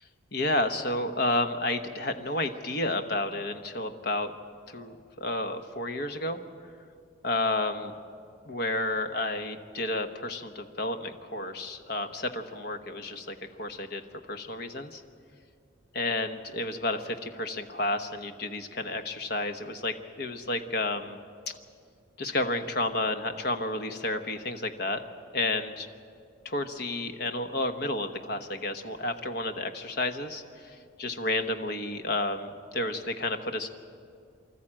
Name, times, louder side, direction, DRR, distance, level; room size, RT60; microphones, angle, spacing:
voice 1, 0.3-4.3 4.7-6.4 7.2-7.9 8.4-14.0 14.3-15.0 15.9-21.2 22.2-25.0 25.3-25.9 26.4-33.7, left 2 dB, 55° left, 7 dB, 1.1 m, -31 dB
25.0 x 13.5 x 8.8 m, 2.3 s
head